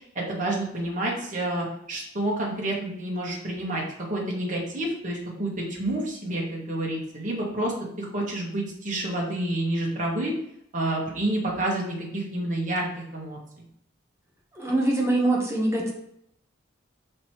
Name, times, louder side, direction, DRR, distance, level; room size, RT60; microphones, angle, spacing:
voice 1, 0.2-10.3 10.7-12.9 13.1-13.4, right 1 dB, 40° right, -3 dB, 1.9 m, -29 dB
voice 2, 14.5-15.9, right 2 dB, 15° right, -3 dB, 1.6 m, -23 dB
5.8 x 4.5 x 4.7 m, 0.73 s
head